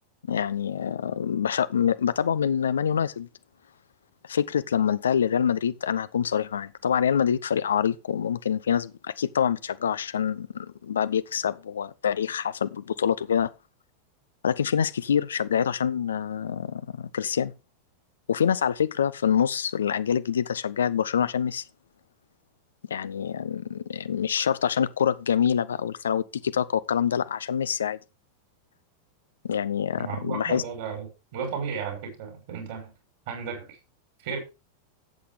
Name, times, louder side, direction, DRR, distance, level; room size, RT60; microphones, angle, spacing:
voice 1, 0.3-3.3 4.2-13.5 14.4-17.5 18.3-21.6 22.9-28.0 29.4-30.6, left 8 dB, 65° left, 0.7 m, -26 dB
voice 2, 30.0-32.9 33.3-33.8 34.2-34.4, right 6 dB, 50° right, 5.5 m, -34 dB
12.0 x 8.5 x 3.7 m
figure-of-eight pair, 90°, 0 cm